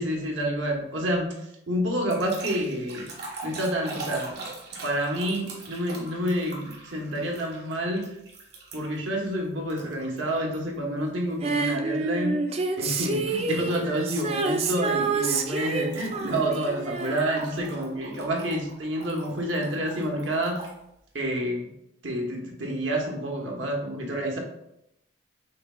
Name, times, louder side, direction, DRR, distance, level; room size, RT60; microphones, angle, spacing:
voice 1, 0.0-3.1 3.4-4.4 4.8-8.1 8.7-12.4 12.8-20.7 21.1-21.7 22.0-24.4, equal, 75° right, 0 dB, 1.1 m, -28 dB
sound 1, 2.1-9.1 9.7-10.6 11.0-11.3 12.9-20.8, right 3 dB, 60° right, 1.3 m, -43 dB
Female singing, 11.4-18.0 18.3-18.4, right 4 dB, 30° right, 0.4 m, -29 dB
6.0 x 3.6 x 2.4 m, 0.81 s
head